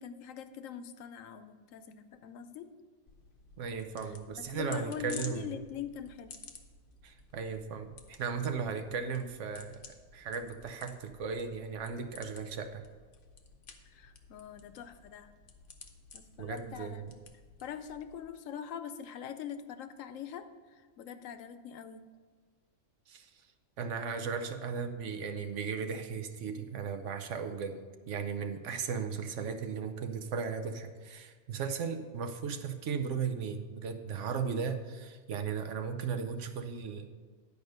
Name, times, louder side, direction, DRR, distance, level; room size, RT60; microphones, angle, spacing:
voice 1, 0.0-2.7 4.4-6.3 13.8-15.3 16.1-17.1 17.6-22.1, left 8 dB, 90° left, 10 dB, 1.0 m, -43 dB
sound 1, 3.1-18.3, left 4 dB, 50° left, 0.9 m, -53 dB
voice 2, 3.6-5.5 7.0-12.8 16.4-17.1 23.1-23.4 23.8-37.1, right 6 dB, 70° right, 7 dB, 1.1 m, -36 dB
10.5 x 5.1 x 6.5 m, 1.5 s
omnidirectional pair, 1.3 m